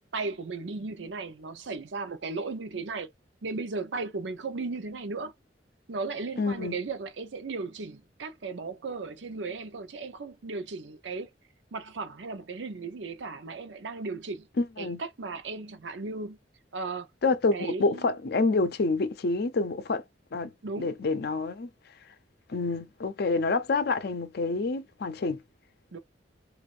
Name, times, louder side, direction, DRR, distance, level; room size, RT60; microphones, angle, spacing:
voice 1, 0.1-3.1 3.4-5.3 5.9-11.3 11.7-14.5 14.8-16.4 16.7-17.1 17.5-18.1 20.6-21.0 25.9-26.0, right 3 dB, 90° right, 0.7 m, -36 dB
voice 2, 6.4-6.8 14.6-15.0 17.2-20.0 20.3-21.7 22.5-25.4, left 3 dB, 60° left, 0.5 m, -28 dB
2.5 x 2.5 x 3.1 m
head